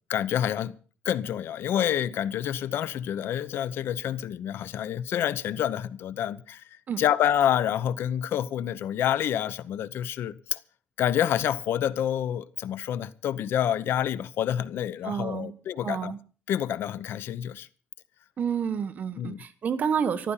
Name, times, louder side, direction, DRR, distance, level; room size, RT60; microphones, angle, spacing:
voice 1, 0.1-0.8 1.0-10.6 11.0-16.1 16.5-17.7 19.2-19.4, left 10 dB, 65° left, 0.9 m, -28 dB
voice 2, 15.0-15.5 15.8-16.2 18.4-20.3, right 7 dB, 40° right, 1.4 m, -29 dB
14.0 x 13.0 x 5.6 m
cardioid pair, 140°, 4 cm